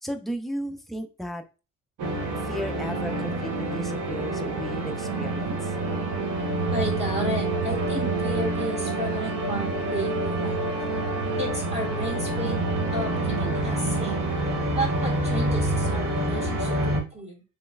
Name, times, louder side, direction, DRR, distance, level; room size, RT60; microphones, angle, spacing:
voice 1, 0.0-1.4 2.4-5.7, equal, ahead, 4 dB, 0.5 m, -34 dB
sound 1, 2.0-17.0, right 2 dB, 80° right, 1.0 m, -27 dB
voice 2, 6.7-10.6 11.4-12.6 12.9-14.2 14.7-17.4, equal, 20° right, -3 dB, 1.6 m, -33 dB
3.2 x 3.0 x 2.2 m, 0.32 s
cardioid pair, 90°, 30 cm